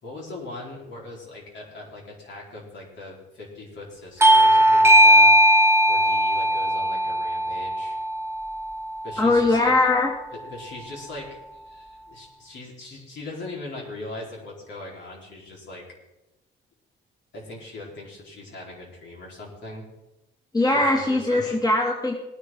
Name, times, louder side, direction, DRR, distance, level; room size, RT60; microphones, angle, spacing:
voice 1, 0.0-5.3 5.9-8.0 9.0-9.7 10.3-15.8 17.3-19.9 20.7-21.6, left 2 dB, 65° left, -3 dB, 4.4 m, -40 dB
Bell / Doorbell, 4.2-9.3, equal, 10° right, 0.8 m, -18 dB
voice 2, 9.2-10.1 20.5-22.1, left 2 dB, 20° left, -2 dB, 2.6 m, -20 dB
19.0 x 9.5 x 3.9 m, 0.99 s
cardioid pair, 90°, 20 cm